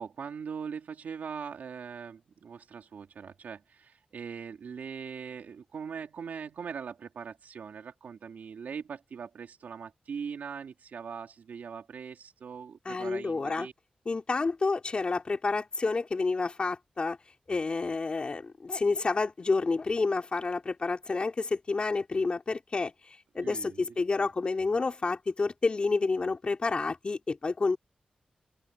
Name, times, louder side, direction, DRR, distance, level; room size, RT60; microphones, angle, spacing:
voice 1, 0.0-13.7 23.4-24.3, right 6 dB, 90° right, 3.2 m, -41 dB
voice 2, 12.8-13.7 14.0-17.2 17.5-22.9 23.3-27.8, left 3 dB, 40° left, 3.3 m, -29 dB
wide cardioid pair, 120°, 3 cm